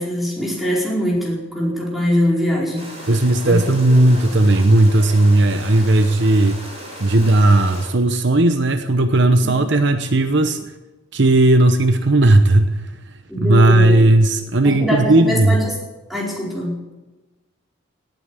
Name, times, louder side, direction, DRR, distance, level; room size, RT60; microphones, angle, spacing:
voice 1, 0.0-2.9 3.5-4.4 9.5-9.6 13.3-13.9 14.6-15.8 16.1-16.8, left 1 dB, ahead, -4 dB, 4.8 m, -22 dB
sound 1, 2.7-7.9, equal, 30° right, 6.9 m, -36 dB
voice 2, 3.1-6.6 7.0-10.6 11.1-12.8 13.4-15.6, right 2 dB, 60° right, 8 dB, 0.9 m, -15 dB
18.0 x 9.3 x 8.3 m, 1.1 s
head